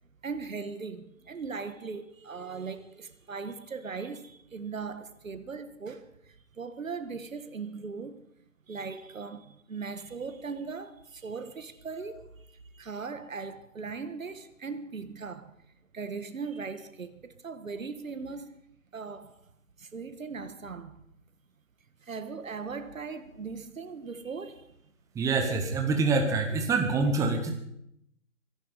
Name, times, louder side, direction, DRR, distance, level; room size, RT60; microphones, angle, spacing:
voice 1, 0.2-8.2 8.7-15.5 15.9-18.6 18.9-19.3 19.8-21.0 22.0-24.8, right 5 dB, 80° right, 1.7 m, -39 dB
voice 2, 25.1-27.5, right 3 dB, 10° right, 1.5 m, -26 dB
24.0 x 11.0 x 5.2 m
figure-of-eight pair, 145°, 39 cm